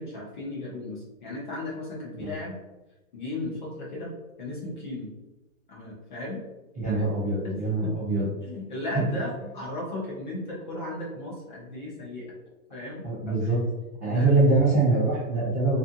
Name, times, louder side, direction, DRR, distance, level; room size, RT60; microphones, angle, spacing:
voice 1, 0.0-2.6 3.1-5.1 5.7-6.4 6.9-7.1 7.4-7.9 8.4-12.3 12.7-13.5 14.0-14.3, left 2 dB, 35° left, -4 dB, 0.6 m, -36 dB
voice 2, 6.7-8.3 13.0-13.6 14.0-15.8, right 3 dB, 10° right, -14 dB, 0.5 m, -23 dB
2.5 x 2.5 x 2.5 m, 1.1 s
hypercardioid pair, 170°, 43 cm